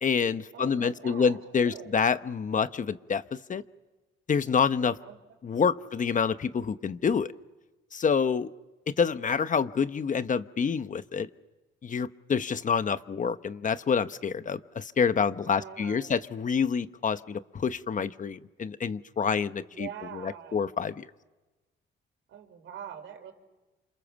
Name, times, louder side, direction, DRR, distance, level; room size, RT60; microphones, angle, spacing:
voice 1, 0.0-3.6 4.3-5.0 5.4-7.3 7.9-8.5 8.9-11.3 11.8-19.9 20.1-21.1, left 6 dB, 40° left, 12 dB, 1.0 m, -27 dB
voice 2, 0.5-2.0 5.0-5.9 15.5-16.1 19.7-20.6 22.3-23.3, right 9 dB, 80° right, 6 dB, 4.6 m, -44 dB
28.5 x 26.5 x 7.2 m, 1.1 s
cardioid pair, 90°, 20 cm